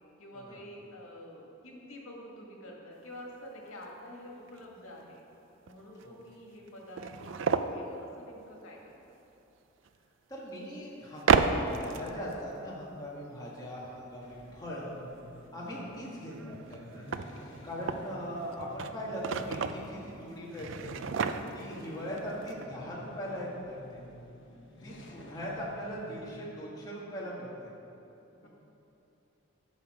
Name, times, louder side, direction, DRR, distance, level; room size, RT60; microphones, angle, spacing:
voice 1, 0.2-5.2 5.6-9.0 15.7-16.1 22.1-22.4 28.4-28.5, left 1 dB, 85° left, -1 dB, 1.7 m, -48 dB
sound 1, 3.5-3.6 3.8-3.9 4.5-4.6 5.7-5.8 6.0-6.1 6.7-7.8 9.9-10.0 11.2-12.3 16.3-18.1 18.5-19.9 20.5-21.8 22.2-22.3 22.5-22.7, right 5 dB, 65° right, 0.4 m, -31 dB
voice 2, 10.3-14.9 15.5-17.0 17.6-21.0 21.5-24.0 24.8-27.7 28.4-28.5, equal, 20° left, -5 dB, 1.7 m, -40 dB
sound 2, 14.2-26.4, left 1 dB, 60° left, 1.2 m, -51 dB
10.5 x 6.3 x 4.9 m, 3.0 s
head